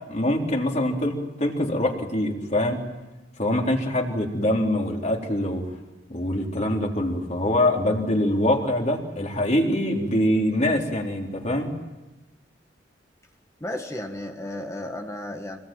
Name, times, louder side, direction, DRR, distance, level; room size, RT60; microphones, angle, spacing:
voice 1, 0.0-2.8 3.4-5.6 6.1-11.7, left 1 dB, 40° left, 0 dB, 3.9 m, -24 dB
voice 2, 13.6-15.6, left 1 dB, 15° left, 3 dB, 1.8 m, -33 dB
27.0 x 21.0 x 9.3 m, 1.1 s
head